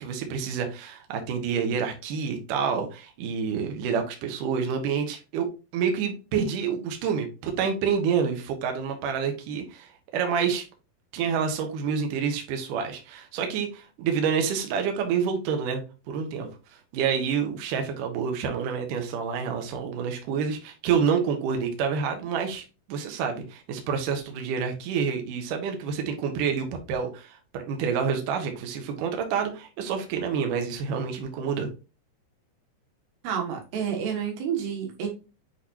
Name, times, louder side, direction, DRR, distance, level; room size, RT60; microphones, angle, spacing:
voice 1, 0.0-5.5 5.7-10.6 11.1-15.8 16.1-16.5 16.9-31.7, right 6 dB, 65° right, 4 dB, 2.4 m, -28 dB
voice 2, 33.2-35.1, right 7 dB, 85° right, 2 dB, 3.8 m, -29 dB
8.2 x 4.6 x 2.9 m, 0.30 s
omnidirectional pair, 4.7 m